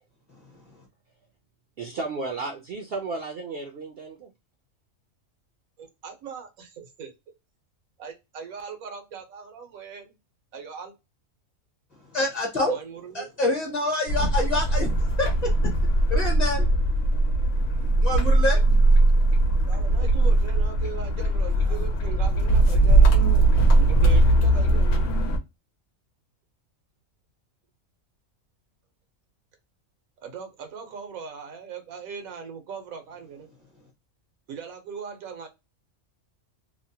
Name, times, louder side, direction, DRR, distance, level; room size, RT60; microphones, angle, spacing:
voice 1, 1.8-4.3, right 3 dB, 60° right, 0.6 m, -33 dB
voice 2, 5.8-7.3 8.0-10.1 10.5-10.9 12.7-13.3 19.7-24.9 30.2-33.5 34.5-35.5, right 6 dB, 85° right, 1.3 m, -39 dB
voice 3, 12.1-12.8 13.1-15.5 16.1-16.7 18.0-18.6, left 2 dB, 35° left, 0.9 m, -26 dB
sound 1, 14.1-25.4, right 2 dB, 70° left, 1.0 m, -20 dB
2.9 x 2.1 x 2.7 m
omnidirectional pair, 1.4 m